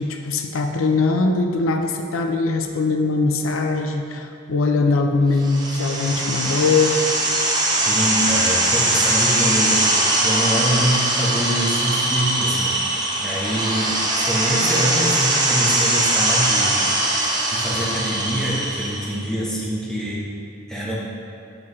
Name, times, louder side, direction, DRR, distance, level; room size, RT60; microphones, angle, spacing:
voice 1, 0.0-7.0, left 3 dB, 85° left, 5 dB, 0.5 m, -21 dB
sound 1, 5.4-19.2, right 2 dB, 20° right, 0.8 m, -21 dB
voice 2, 7.9-12.8 13.2-16.9 17.5-20.3 20.7-21.0, equal, 5° left, -6 dB, 1.0 m, -25 dB
7.7 x 5.9 x 3.2 m, 2.6 s
head